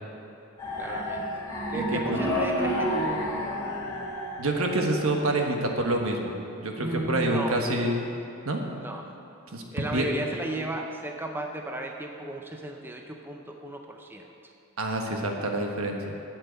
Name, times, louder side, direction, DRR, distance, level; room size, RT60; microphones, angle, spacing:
sound 1, 0.6-5.5, equal, 15° left, 1.7 m, -30 dB
voice 1, 0.8-1.3 1.7-3.3 6.8-7.6 8.8-9.1 9.7-14.3, right 2 dB, 10° right, 2 dB, 0.6 m, -34 dB
voice 2, 1.7-2.2 4.4-6.3 6.6-8.1 8.4-8.6 9.5-9.6 9.9-10.1 14.8-16.1, right 1 dB, 75° right, 2 dB, 1.4 m, -27 dB
9.0 x 7.8 x 8.2 m, 2.8 s
head